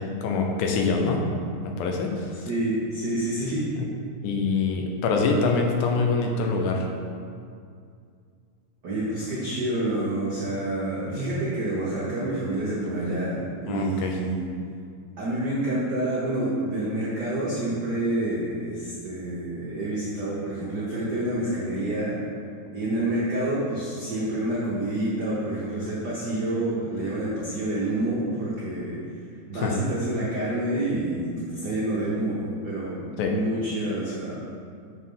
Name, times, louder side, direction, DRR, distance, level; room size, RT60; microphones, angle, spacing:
voice 1, 0.2-1.2 1.6-2.5 3.8-3.9 4.2-6.9 13.7-14.1 29.5-29.8 33.2-33.3, left 4 dB, 90° left, 2 dB, 2.2 m, -25 dB
voice 2, 2.5-3.6 8.8-14.3 15.2-22.2 22.7-29.0 29.5-34.4, right 1 dB, 80° right, -7 dB, 0.9 m, -28 dB
6.4 x 4.2 x 5.5 m, 2.3 s
omnidirectional pair, 3.4 m